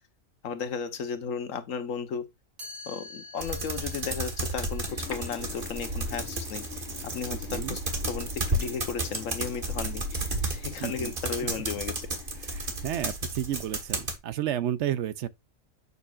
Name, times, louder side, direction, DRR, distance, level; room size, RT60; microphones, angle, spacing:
voice 1, 0.4-2.3 2.9-7.8 8.1-12.0, left 6 dB, 90° left, 1.3 m, -35 dB
Chime, 2.6-8.4, left 2 dB, 90° right, 3.3 m, -49 dB
sound 1, 3.4-14.2, right 2 dB, 45° right, 1.7 m, -33 dB
sound 2, 4.9-13.0, left 8 dB, 55° left, 1.4 m, -47 dB
voice 2, 7.3-7.8 10.8-11.1 12.5-15.3, right 11 dB, 65° right, 0.8 m, -32 dB
8.1 x 6.7 x 2.4 m
omnidirectional pair, 1.3 m